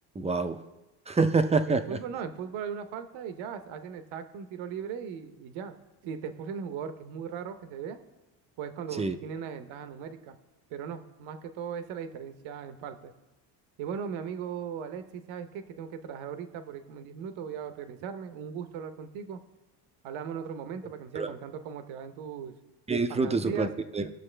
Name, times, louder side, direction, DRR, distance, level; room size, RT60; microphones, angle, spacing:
voice 1, 0.2-0.6 1.1-2.0 9.0-9.2 21.1-21.3 22.9-23.7 23.9-24.1, right 4 dB, 15° right, 8 dB, 0.5 m, -26 dB
voice 2, 1.6-5.7 6.0-8.0 8.6-10.4 10.7-13.1 13.8-19.4 20.0-22.5 23.1-23.7, right 7 dB, 80° right, 9 dB, 0.9 m, -38 dB
19.5 x 6.6 x 3.3 m, 1.0 s
cardioid pair, 125°, 48 cm